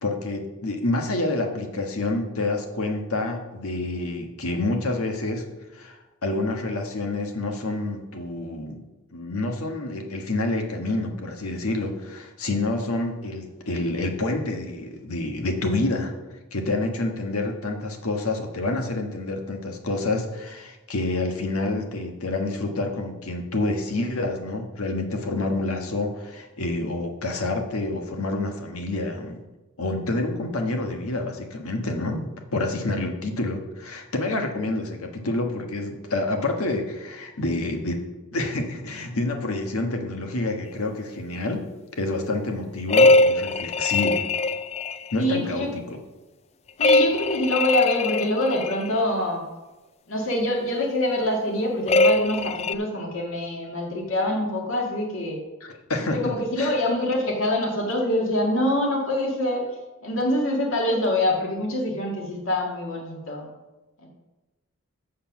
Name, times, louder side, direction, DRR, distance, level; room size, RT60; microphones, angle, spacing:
voice 1, 0.0-5.4 5.7-8.8 9.1-16.1 16.5-29.4 29.8-38.0 38.3-41.6 42.0-44.2 45.1-45.8 55.6-56.7, left 2 dB, 75° left, 4 dB, 1.4 m, -28 dB
sound 1, 42.9-45.2 46.8-48.9 51.9-52.7, left 2 dB, 30° left, 0.3 m, -21 dB
voice 2, 45.2-45.7 46.8-49.4 50.1-55.4 56.1-59.6 60.0-63.5 64.0-64.1, left 1 dB, 60° left, 0 dB, 1.9 m, -25 dB
7.8 x 6.5 x 6.0 m, 1.1 s
head